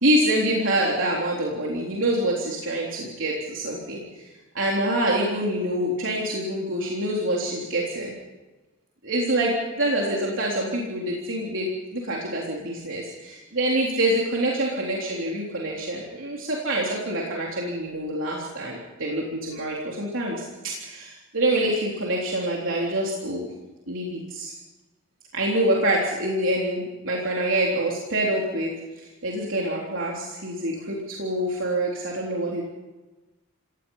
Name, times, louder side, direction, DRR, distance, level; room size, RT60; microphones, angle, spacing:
voice 1, 0.0-8.1 9.0-23.5 23.9-24.5 25.3-28.8 29.2-32.6, right 1 dB, 70° right, -3 dB, 3.6 m, -26 dB
27.5 x 18.0 x 5.7 m, 1.1 s
head